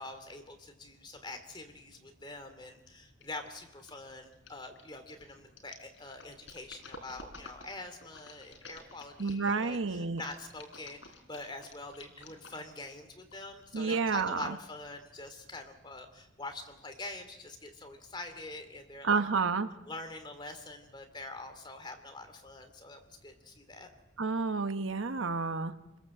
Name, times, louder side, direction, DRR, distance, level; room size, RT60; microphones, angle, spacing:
voice 1, 0.0-19.2 19.9-23.9, left 2 dB, 25° left, 6 dB, 2.8 m, -45 dB
sound 1, 3.2-3.5 3.8-9.6 10.2-12.8 13.3-13.4, left 3 dB, 70° left, 4.1 m, -51 dB
voice 2, 9.2-10.2 13.7-14.6 19.0-19.7 24.2-26.0, right 4 dB, 80° right, 10 dB, 1.1 m, -30 dB
28.5 x 21.5 x 7.8 m, 0.98 s
head